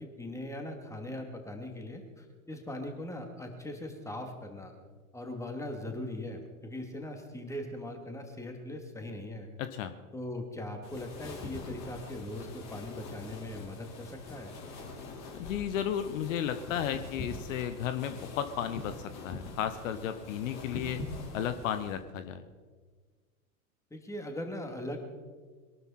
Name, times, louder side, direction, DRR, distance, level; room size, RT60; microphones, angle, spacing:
voice 1, 0.0-4.7 5.1-9.5 10.1-14.5 23.9-25.0, left 1 dB, 5° left, 4 dB, 2.7 m, -40 dB
voice 2, 9.6-9.9 15.4-18.9 19.2-21.0 21.3-22.4, left 9 dB, 65° left, 10 dB, 1.1 m, -33 dB
sound 1, 10.8-22.0, left 3 dB, 40° left, 4.5 m, -44 dB
22.0 x 12.5 x 4.4 m, 1.5 s
hypercardioid pair, 95°, 42 cm